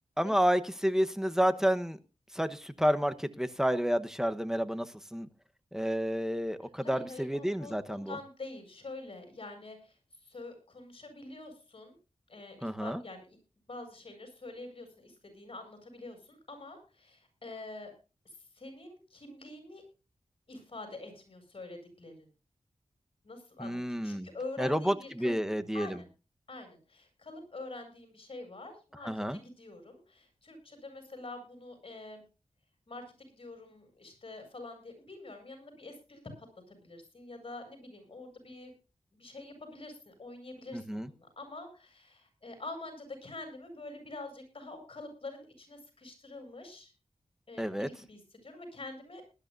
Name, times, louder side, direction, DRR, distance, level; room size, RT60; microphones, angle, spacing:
voice 1, 0.2-2.0 2.3-4.9 5.1-5.3 5.7-8.2 12.6-13.0 23.6-24.3 24.6-26.0 29.0-29.4 40.7-41.1 47.6-47.9, equal, 5° right, 9 dB, 1.1 m, -30 dB
voice 2, 6.8-9.9 10.2-11.9 12.3-13.4 13.7-17.9 18.2-19.8 20.5-22.3 23.2-25.4 25.7-26.1 26.5-32.2 32.9-38.7 39.1-46.9 47.5-49.4, left 2 dB, 55° left, 5 dB, 7.7 m, -46 dB
20.0 x 13.0 x 2.6 m, 0.32 s
wide cardioid pair, 95°, 11 cm